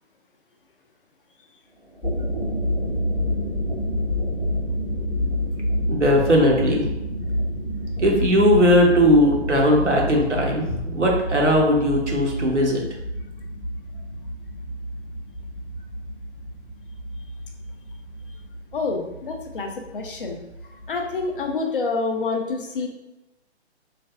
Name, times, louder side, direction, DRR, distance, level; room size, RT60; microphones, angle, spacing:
sound 1, 1.8-21.5, equal, ahead, 0.5 m, -29 dB
voice 1, 5.9-6.8 8.0-12.8, equal, 90° right, -1 dB, 0.9 m, -18 dB
voice 2, 18.7-20.4 20.9-22.9, left 4 dB, 50° left, 3 dB, 0.5 m, -27 dB
3.2 x 2.3 x 2.4 m, 0.96 s
figure-of-eight pair, 130°, 34 cm